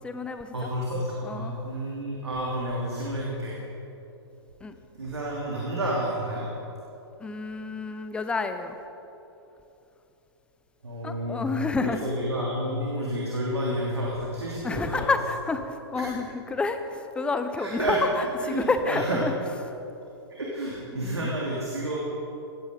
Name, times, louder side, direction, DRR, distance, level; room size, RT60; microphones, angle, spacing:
voice 1, 0.0-0.7 1.2-1.5 4.6-4.8 7.2-8.8 11.0-12.0 14.6-19.4 19.7-19.8 20.9-21.3, left 3 dB, 5° left, 8 dB, 0.8 m, -29 dB
voice 2, 0.5-3.6 5.0-6.5 10.8-11.5 11.8-15.1 15.9-16.1 17.6-18.0 18.4-19.2 20.3-22.0, right 1 dB, 75° right, -4 dB, 3.1 m, -30 dB
18.0 x 14.5 x 5.3 m, 2.9 s
figure-of-eight pair, 115°, 14 cm